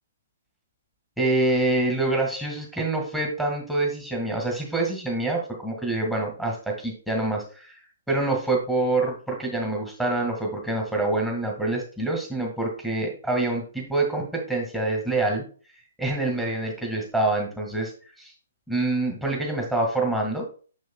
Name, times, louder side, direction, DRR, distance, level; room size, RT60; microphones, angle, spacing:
voice 1, 1.2-7.8 8.1-15.4 16.0-17.9 18.2-18.3 18.7-20.4, right 2 dB, 5° right, -1 dB, 1.8 m, -26 dB
6.4 x 6.4 x 2.3 m, 0.39 s
figure-of-eight pair, 130°, 0 cm